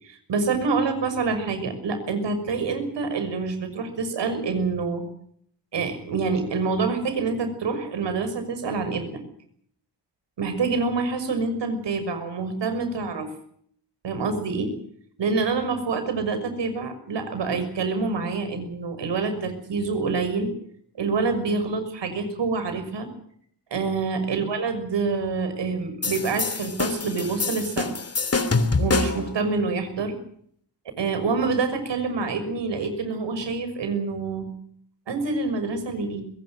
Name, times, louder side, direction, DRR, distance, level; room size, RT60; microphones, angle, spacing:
voice 1, 0.0-5.0 5.7-9.2 10.4-13.3 14.0-14.7 15.2-20.5 21.0-23.1 23.7-27.9 28.8-30.2 31.0-34.4 35.1-36.2, right 4 dB, 75° right, 10 dB, 6.2 m, -26 dB
sound 1, 26.0-29.3, left 3 dB, 35° left, 3.0 m, -25 dB
25.0 x 21.5 x 6.5 m, 0.65 s
cardioid pair, 100°, 43 cm